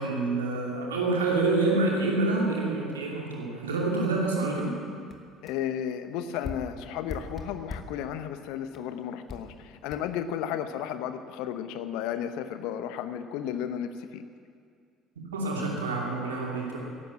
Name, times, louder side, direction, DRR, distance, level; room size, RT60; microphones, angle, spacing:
voice 1, 0.0-4.7 15.3-16.8, right 2 dB, 80° right, -2 dB, 2.7 m, -27 dB
sound 1, 4.6-4.7 5.1-5.2 5.5-5.6 6.4-8.0 8.7-8.9 9.3-9.5 9.9-10.0, left 4 dB, 35° left, 1.9 m, -39 dB
voice 2, 5.4-14.2, left 9 dB, 65° left, 10 dB, 0.9 m, -33 dB
14.5 x 11.5 x 7.5 m, 2.2 s
figure-of-eight pair, 55°, 0 cm